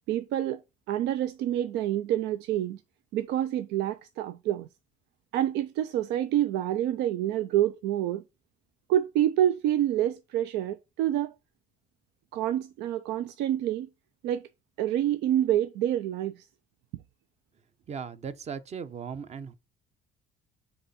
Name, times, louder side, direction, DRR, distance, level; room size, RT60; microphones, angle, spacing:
voice 1, 0.1-0.6 0.9-2.8 3.1-4.7 5.3-8.2 8.9-11.3 12.3-13.9 14.2-14.5 14.8-16.5, right 12 dB, 90° right, 0.5 m, -27 dB
voice 2, 17.9-19.5, right 6 dB, 40° right, 0.8 m, -37 dB
7.8 x 3.3 x 4.2 m
cardioid pair, 110°, 17 cm